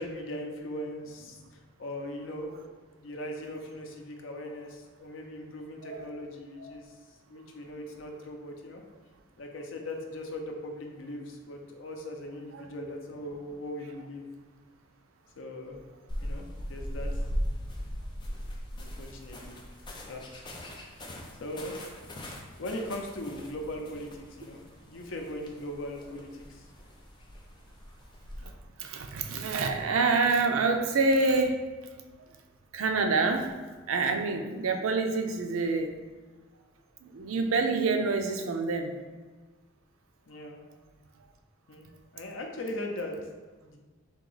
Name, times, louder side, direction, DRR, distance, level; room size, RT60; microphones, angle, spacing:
voice 1, 0.0-2.6 3.0-6.9 7.3-8.8 9.4-14.3 15.4-15.8 16.2-17.1 18.8-19.6 20.1-20.3 20.9-21.0 21.4-21.7 22.6-26.6 40.3-40.6 41.7-41.9 42.1-43.2 43.6-43.8, left 1 dB, 70° left, 2 dB, 0.6 m, -39 dB
sound 1, 16.1-28.5, equal, 20° left, 0.4 m, -39 dB
voice 2, 28.8-31.6 32.7-33.5 33.9-35.9 37.0-38.9, right 3 dB, 85° right, 4 dB, 0.5 m, -27 dB
3.6 x 2.9 x 3.9 m, 1.3 s
head